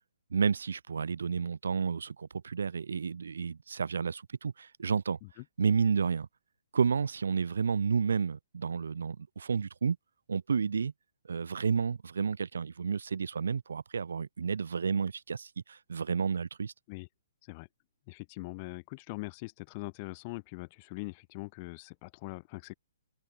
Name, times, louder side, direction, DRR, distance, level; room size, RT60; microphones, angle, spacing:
voice 1, 0.3-5.2 5.6-6.3 6.7-10.0 10.3-10.9 11.3-16.7, right 6 dB, 90° right, 1.4 m, -31 dB
voice 2, 18.1-22.8, left 26 dB, 25° left, 2.4 m, -42 dB
hypercardioid pair, 170°, 0 cm